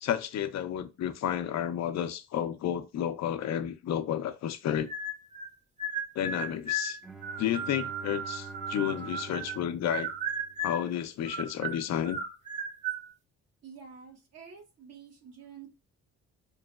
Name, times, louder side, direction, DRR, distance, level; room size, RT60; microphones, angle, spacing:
voice 1, 0.0-4.9 6.2-7.0 7.4-10.1 10.6-12.2, left 10 dB, 60° left, 0.6 m, -31 dB
sound 1, 4.9-5.5 5.8-9.6 9.9-10.9 11.2-13.1, right 2 dB, 25° right, 0.9 m, -35 dB
Bowed string instrument, 7.0-11.0, right 4 dB, ahead, 0.6 m, -47 dB
voice 2, 13.6-15.7, right 6 dB, 55° right, 1.2 m, -49 dB
4.7 x 3.0 x 2.4 m
cardioid pair, 90°, 30 cm